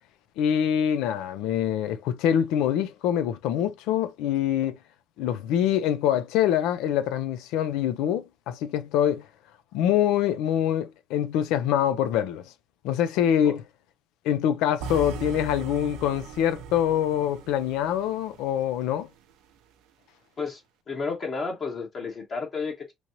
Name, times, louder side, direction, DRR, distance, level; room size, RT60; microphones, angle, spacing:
voice 1, 0.4-4.8 5.2-9.2 9.7-12.4 12.8-13.6 14.2-19.1, left 10 dB, 85° left, 0.4 m, -25 dB
sound 1, 14.8-18.9, right 4 dB, 80° right, 0.5 m, -39 dB
voice 2, 20.9-22.9, left 4 dB, 45° left, 1.1 m, -32 dB
3.1 x 2.6 x 2.7 m
supercardioid pair, 85°, 0 cm